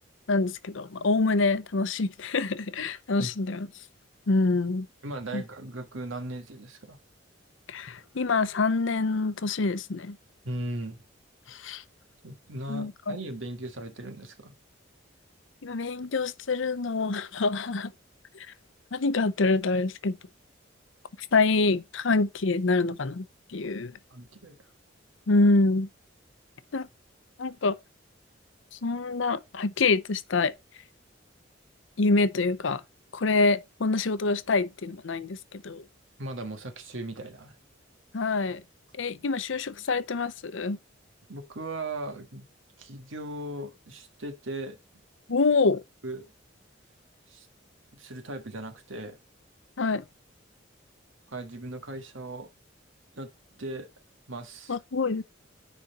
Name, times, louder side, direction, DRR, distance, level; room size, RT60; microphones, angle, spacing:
voice 1, 0.3-3.7 4.3-4.9 5.3-5.4 7.7-10.2 11.5-11.8 12.7-13.2 15.6-17.9 18.9-20.2 21.3-23.9 25.3-25.9 26.7-26.9 27.4-27.8 28.8-30.5 32.0-32.8 33.1-35.8 38.1-38.6 39.0-40.8 45.3-45.8 49.8-50.0 54.7-55.2, left 3 dB, 70° left, 0.7 m, -26 dB
voice 2, 5.0-7.0 10.4-11.0 12.2-14.5 24.1-24.7 36.2-37.5 41.3-42.5 42.8-44.8 46.0-46.3 47.3-47.5 47.9-49.2 51.3-52.5 53.1-53.3 53.6-53.9 54.3-54.8, right 1 dB, 80° right, 1.6 m, -38 dB
9.9 x 4.1 x 4.1 m
head